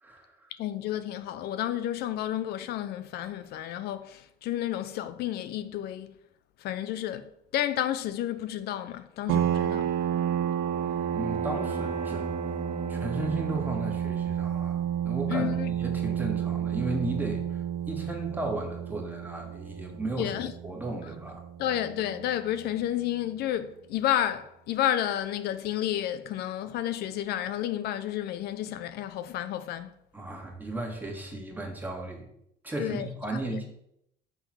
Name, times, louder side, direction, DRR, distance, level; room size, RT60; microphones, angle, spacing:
voice 1, 0.0-0.5 11.1-12.3 12.9-20.3 20.6-21.4 30.1-32.3 32.6-33.7, right 2 dB, 10° right, 1.6 m, -35 dB
voice 2, 0.6-6.1 6.6-9.9 15.3-15.7 20.2-20.5 21.6-29.9 32.8-33.6, left 12 dB, 70° left, 0.4 m, -31 dB
sound 1, 9.3-22.6, right 9 dB, 75° right, 0.6 m, -31 dB
Bowed string instrument, 10.2-15.0, right 2 dB, 45° right, 1.5 m, -40 dB
5.6 x 3.8 x 6.0 m
cardioid pair, 110°, 17 cm